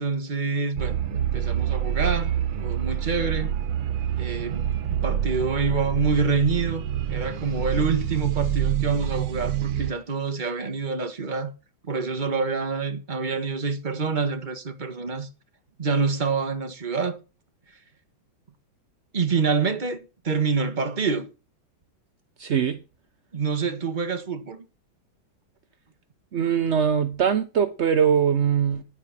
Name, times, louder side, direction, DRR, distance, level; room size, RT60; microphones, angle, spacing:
voice 1, 0.0-3.5 4.2-6.8 7.1-11.5 11.8-15.3 15.8-17.2 19.1-21.3 23.3-24.6, right 4 dB, 25° right, 1.3 m, -27 dB
sound 1, 0.8-9.9, right 10 dB, 85° right, 1.8 m, -27 dB
voice 2, 22.4-22.8 26.3-28.8, right 7 dB, 55° right, 0.8 m, -22 dB
10.5 x 8.9 x 5.9 m
omnidirectional pair, 2.2 m